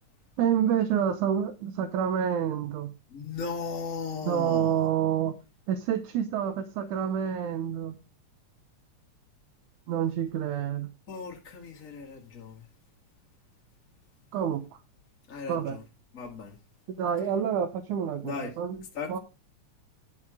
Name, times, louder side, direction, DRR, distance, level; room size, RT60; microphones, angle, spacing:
voice 1, 0.4-2.9 4.2-5.4 5.7-8.0 9.9-10.9 14.3-14.8 15.5-15.8 17.0-18.8 19.1-19.2, right 9 dB, 85° right, 2.5 m, -28 dB
voice 2, 3.1-4.8 11.1-12.6 15.3-15.8 16.1-16.5 18.2-18.5 18.9-19.2, left 5 dB, 30° left, 1.9 m, -37 dB
11.5 x 5.8 x 4.9 m
omnidirectional pair, 3.4 m